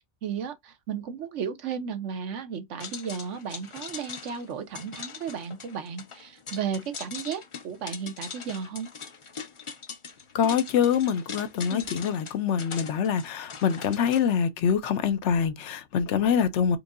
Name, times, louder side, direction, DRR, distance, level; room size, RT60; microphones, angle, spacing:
voice 1, 0.2-8.9 11.7-11.9, right 7 dB, 90° right, 1.2 m, -34 dB
sound 1, 2.8-14.2, left 5 dB, 50° left, 0.4 m, -41 dB
voice 2, 10.3-16.8, left 7 dB, 75° left, 1.0 m, -25 dB
4.5 x 2.6 x 2.4 m
omnidirectional pair, 1.2 m